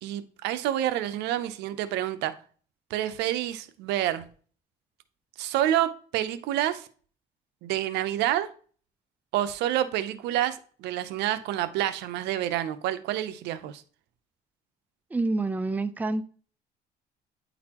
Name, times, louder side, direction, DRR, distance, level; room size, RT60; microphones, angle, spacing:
voice 1, 0.0-2.3 2.9-4.2 5.4-6.9 7.6-8.5 9.3-13.8, right 12 dB, 85° right, 0.7 m, -28 dB
voice 2, 15.1-16.3, right 2 dB, 10° right, 0.4 m, -27 dB
9.5 x 4.0 x 2.9 m
cardioid pair, 110°, 17 cm